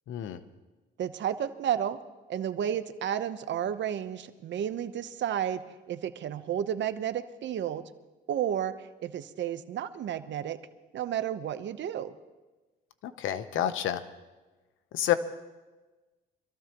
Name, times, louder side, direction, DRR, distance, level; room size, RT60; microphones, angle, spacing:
voice 1, 0.1-0.4 13.0-14.0 14.9-15.1, left 11 dB, 80° left, 11 dB, 0.9 m, -29 dB
voice 2, 1.0-2.0 2.3-5.6 5.9-7.8 8.3-10.6 10.9-12.1, right 9 dB, 65° right, 11 dB, 0.9 m, -32 dB
25.5 x 14.0 x 3.0 m, 1.2 s
cardioid pair, 90°, 20 cm